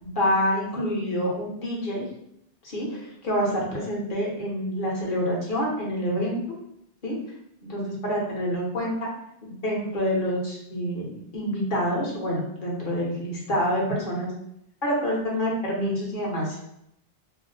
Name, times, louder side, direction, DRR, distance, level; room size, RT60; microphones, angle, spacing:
voice 1, 0.0-2.1 2.6-6.4 7.0-7.2 7.6-9.1 9.4-14.3 14.8-16.6, equal, 50° left, -4 dB, 1.1 m, -27 dB
2.7 x 2.0 x 3.9 m, 0.76 s
omnidirectional pair, 1.1 m